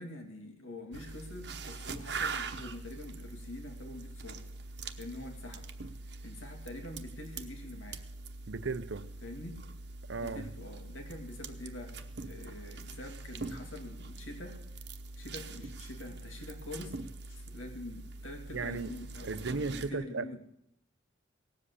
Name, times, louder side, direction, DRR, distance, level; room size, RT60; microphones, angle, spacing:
voice 1, 0.0-4.5 5.0-5.7 6.2-8.1 9.2-9.7 10.1-14.6 15.2-17.0 17.3-20.4, left 1 dB, 90° left, 2.5 m, -45 dB
sound 1, 0.9-19.9, right 3 dB, 55° right, 1.0 m, -43 dB
voice 2, 8.5-9.1 10.1-10.5 18.5-18.9 19.2-20.3, right 4 dB, 70° right, 0.6 m, -35 dB
18.0 x 7.7 x 8.3 m
head